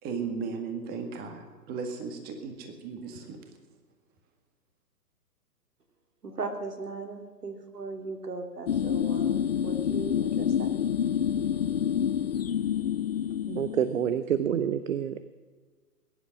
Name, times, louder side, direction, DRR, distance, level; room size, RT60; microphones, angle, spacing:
voice 1, 0.0-3.6, right 5 dB, 20° right, 1.9 m, -36 dB
voice 2, 6.2-10.7, right 3 dB, 75° right, 2.8 m, -38 dB
sound 1, 8.7-14.1, left 9 dB, 40° left, 0.5 m, -28 dB
voice 3, 13.5-15.2, right 9 dB, 55° right, 0.9 m, -28 dB
20.5 x 10.5 x 6.1 m
figure-of-eight pair, 130°, 48 cm